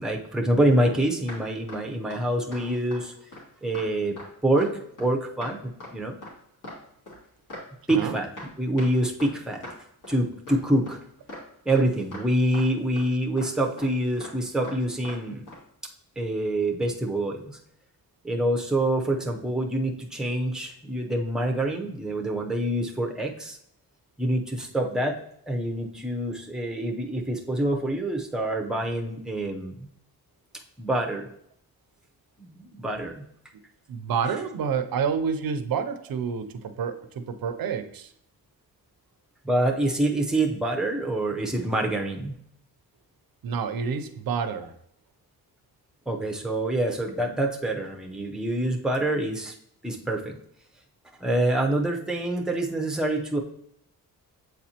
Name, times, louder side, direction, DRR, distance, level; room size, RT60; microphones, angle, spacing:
voice 1, 0.0-3.1 3.6-4.2 4.4-4.7 5.0-6.1 7.9-8.3 8.6-9.6 10.1-11.0 11.7-15.4 16.2-17.6 18.2-23.6 24.2-29.9 30.8-31.3 32.4-33.3 39.4-42.4 46.1-49.5 49.8-50.4 51.2-53.4, right 1 dB, ahead, 1 dB, 0.6 m, -26 dB
sound 1, 0.9-1.0 1.3-1.4 1.7-1.8 2.1-2.2 2.5-2.6 2.9-3.0 3.3-3.5 3.7-3.9 4.2-4.3 4.6-4.7 5.0-5.1 5.4-5.5 5.8-5.9 6.2-6.3 6.6-6.8 7.1-7.6 7.9-8.1 8.4-8.5 8.8-8.9 9.2-9.3 9.6-9.8 10.0-10.2 10.5-10.6 10.9-11.0 11.3-11.4 11.7-11.9 12.1-12.3 12.5-12.7 12.9-13.1 13.4-13.5 13.8-13.9 14.2-14.4 14.6-14.8 15.0-15.2 15.5-15.6, left 1 dB, 55° left, 2.1 m, -40 dB
voice 2, 33.9-38.1 43.4-44.7, right 6 dB, 70° right, 9 dB, 0.6 m, -29 dB
8.0 x 4.2 x 2.8 m, 0.70 s
wide cardioid pair, 145°, 37 cm